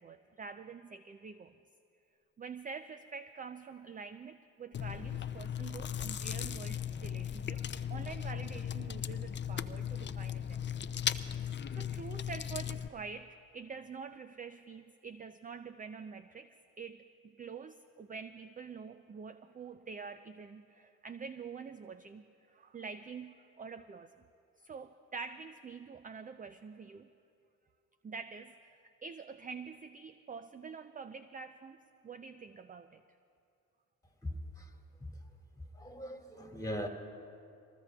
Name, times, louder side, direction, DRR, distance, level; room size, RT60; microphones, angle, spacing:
voice 1, 0.0-1.5 2.4-7.6 7.9-10.7 11.3-24.2 24.6-27.1 28.0-33.0, right 5 dB, 25° right, 10 dB, 0.4 m, -46 dB
Chewing mastication, 4.7-12.9, left 9 dB, 30° left, 0.5 m, -37 dB
voice 2, 34.2-35.2 35.6-36.9, equal, 10° left, 3 dB, 2.0 m, -41 dB
23.5 x 19.5 x 2.4 m, 2.5 s
supercardioid pair, 60°, 36 cm